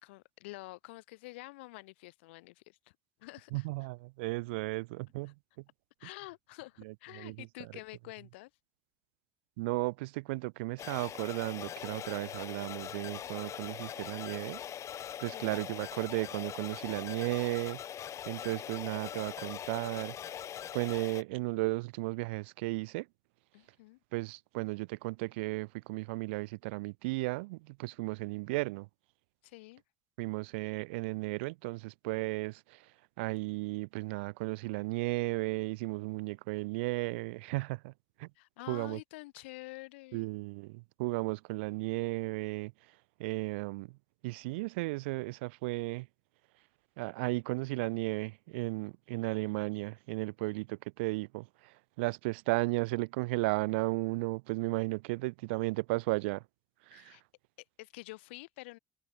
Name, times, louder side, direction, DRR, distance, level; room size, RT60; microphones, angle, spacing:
voice 1, 0.0-2.9 3.2-3.7 6.0-8.5 15.3-15.6 23.5-24.0 29.4-29.8 38.4-40.3 56.9-57.2 57.8-58.8, left 22 dB, 85° left, 3.7 m, -48 dB
voice 2, 3.5-5.3 6.8-7.5 9.6-14.6 15.2-20.2 20.7-23.1 24.1-28.9 30.2-32.9 33.2-37.9 38.2-38.3 38.7-39.0 40.1-42.7 43.2-44.0 44.2-46.1 47.0-56.4 56.9-57.2, right 24 dB, 85° right, 0.4 m, -35 dB
sound 1, 10.8-21.2, left 10 dB, 55° left, 1.2 m, -42 dB
hypercardioid pair, 65°, 6 cm